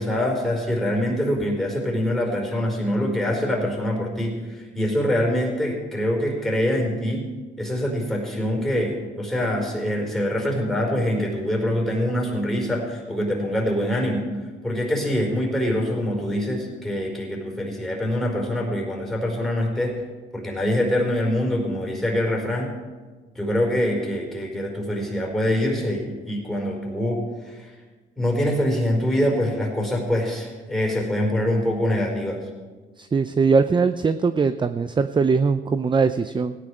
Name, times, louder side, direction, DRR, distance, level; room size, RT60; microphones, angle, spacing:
voice 1, 0.0-7.2 7.6-14.2 14.6-20.0 20.3-22.7 23.3-27.7 28.2-32.4, left 1 dB, ahead, -1 dB, 4.7 m, -24 dB
voice 2, 33.0-36.6, right 5 dB, 25° right, 11 dB, 0.5 m, -21 dB
17.0 x 10.0 x 4.9 m, 1.3 s
cardioid pair, 90°, 20 cm